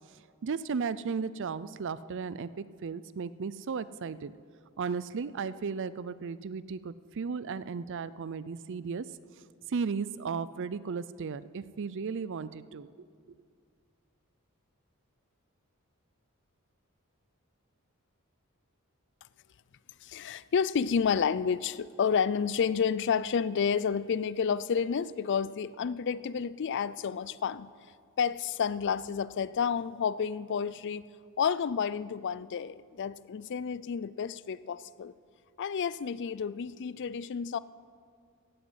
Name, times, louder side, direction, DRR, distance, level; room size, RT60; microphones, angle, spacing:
voice 1, 0.4-4.3 4.8-9.1 9.7-12.9, right 5 dB, 60° right, 16 dB, 0.5 m, -35 dB
voice 2, 20.0-27.7 28.2-31.1 31.4-35.1 35.6-37.6, left 6 dB, 55° left, 18 dB, 0.4 m, -30 dB
15.5 x 9.3 x 8.0 m, 2.1 s
head